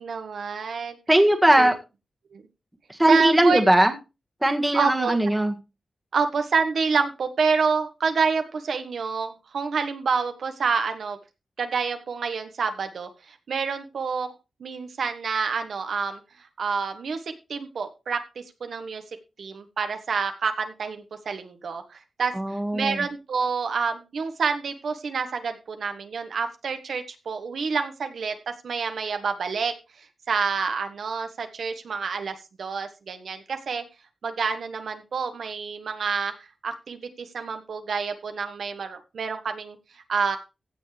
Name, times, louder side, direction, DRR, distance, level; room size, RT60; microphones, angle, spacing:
voice 1, 0.0-1.0 1.6-1.7 2.3-2.4 3.1-3.6 4.7-5.2 6.1-11.2 11.6-14.3 14.6-16.2 16.6-17.2 17.5-19.0 19.4-22.3 22.7-28.3 28.6-29.7 30.3-33.8 34.2-36.3 36.6-39.8 40.1-40.4, right 5 dB, 70° right, 7 dB, 1.4 m, -28 dB
voice 2, 1.1-1.7 2.9-3.9 4.4-5.5 22.3-23.0, right 1 dB, 10° right, 5 dB, 1.7 m, -19 dB
15.5 x 7.2 x 3.3 m, 0.27 s
wide cardioid pair, 155°, 0 cm